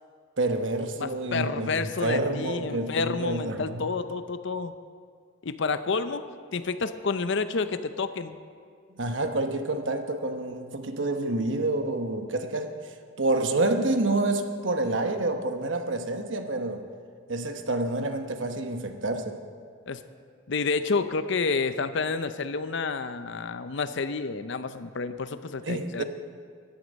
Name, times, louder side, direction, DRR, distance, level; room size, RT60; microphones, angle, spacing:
voice 1, 0.4-3.9 8.9-16.8 17.3-19.4 25.6-26.0, right 2 dB, 60° right, 6 dB, 1.0 m, -28 dB
voice 2, 1.0-4.7 5.4-6.3 6.5-8.4 19.9-20.0 20.5-26.0, left 4 dB, 60° left, 12 dB, 0.6 m, -29 dB
15.5 x 11.5 x 5.3 m, 2.1 s
head